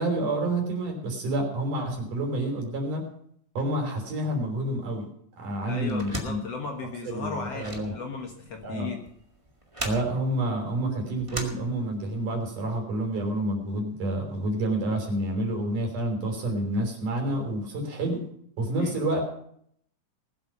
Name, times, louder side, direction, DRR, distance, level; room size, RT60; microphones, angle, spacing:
voice 1, 0.0-3.0 3.5-5.1 5.4-6.4 7.1-7.9 8.6-8.9 9.8-18.2 18.6-19.2, right 1 dB, 90° right, 2 dB, 5.0 m, -28 dB
voice 2, 5.7-9.0 18.8-18.9, left 4 dB, 60° left, 2 dB, 2.2 m, -36 dB
sound 1, 5.9-12.2, right 1 dB, 15° right, 1.3 m, -39 dB
20.0 x 8.1 x 5.8 m, 0.67 s
omnidirectional pair, 3.5 m